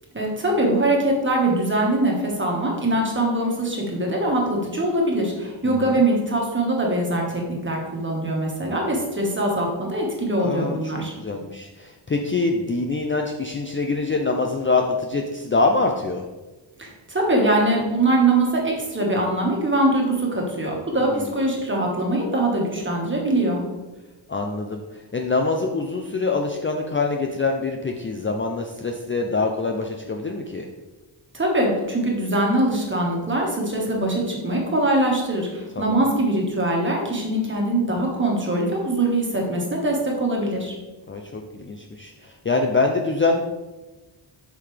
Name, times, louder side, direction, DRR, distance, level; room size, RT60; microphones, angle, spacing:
voice 1, 0.1-11.1 16.8-23.6 31.3-40.7, right 1 dB, 25° right, -1 dB, 1.6 m, -22 dB
voice 2, 5.6-6.0 10.4-10.9 11.2-16.2 21.0-21.4 24.3-30.7 35.8-36.1 41.1-43.4, left 3 dB, 25° left, 2 dB, 0.4 m, -25 dB
8.1 x 5.7 x 3.3 m, 1.1 s
wide cardioid pair, 155°, 46 cm